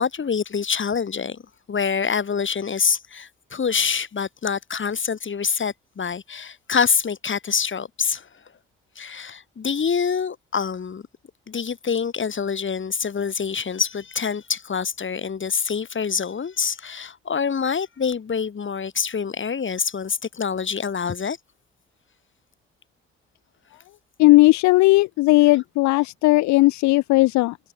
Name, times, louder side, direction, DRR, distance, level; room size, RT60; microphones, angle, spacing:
voice 1, 0.0-1.4 1.7-8.3 8.9-11.0 11.5-21.4, left 6 dB, 40° left, 4.9 m, -26 dB
voice 2, 24.2-27.6, left 20 dB, 70° left, 1.2 m, -16 dB
hypercardioid pair, 50°, 29 cm